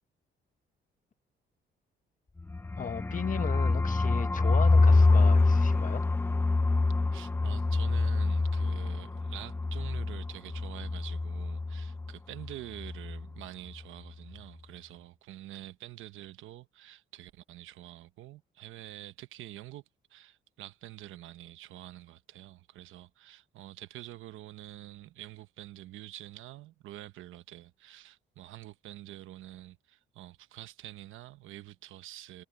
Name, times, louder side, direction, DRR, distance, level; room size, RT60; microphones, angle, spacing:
sound 1, 2.4-12.1 12.4-12.5 12.8-13.3, left 3 dB, 10° left, 0.4 m, -26 dB
voice 1, 2.8-6.1, left 7 dB, 40° left, 1.1 m, -36 dB
voice 2, 7.1-19.8 20.1-32.4, right 14 dB, 85° right, 0.9 m, -47 dB
cardioid pair, 90°, 20 cm